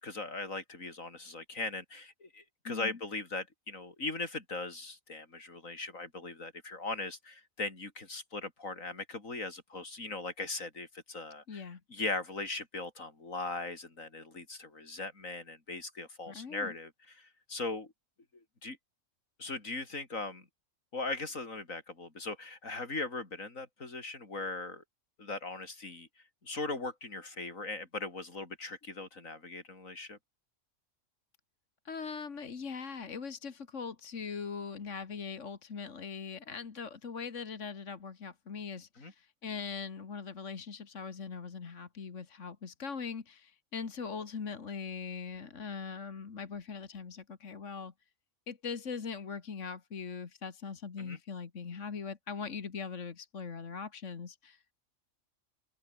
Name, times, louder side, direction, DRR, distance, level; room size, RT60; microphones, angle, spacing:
voice 1, 0.0-17.9 18.6-18.8 19.4-20.5 20.9-24.8 25.2-26.1 26.4-30.2 39.0-39.1 51.0-51.2, left 3 dB, 85° left, 4.4 m, -39 dB
voice 2, 2.7-3.0 11.5-11.8 16.3-16.8 31.9-47.9 48.5-54.7, left 5 dB, 65° left, 2.0 m, -41 dB
open air
omnidirectional pair, 1.4 m